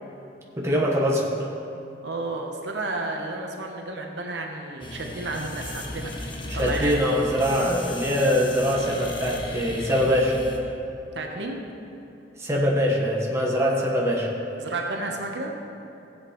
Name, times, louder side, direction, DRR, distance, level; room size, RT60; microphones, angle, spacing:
voice 1, 0.6-1.3 6.5-10.3 12.4-14.3, equal, 15° right, -3 dB, 1.3 m, -23 dB
voice 2, 2.0-6.1 6.4-7.0 11.1-11.6 14.5-15.5, right 2 dB, 75° right, 1 dB, 1.0 m, -32 dB
sound 1, 4.8-10.6, left 1 dB, 25° left, 1.0 m, -35 dB
16.5 x 8.2 x 3.2 m, 2.8 s
head